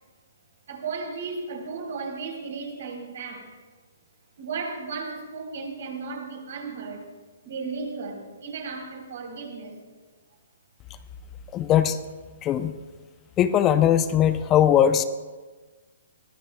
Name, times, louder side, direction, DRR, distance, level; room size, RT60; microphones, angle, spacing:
voice 1, 0.7-3.5 4.4-7.1 7.4-9.8, right 4 dB, 65° right, 1 dB, 3.5 m, -35 dB
voice 2, 11.5-12.0 12.4-12.7 13.4-15.0, left 10 dB, 25° left, 12 dB, 0.5 m, -20 dB
21.0 x 14.5 x 2.2 m, 1.3 s
hypercardioid pair, 140°, 0 cm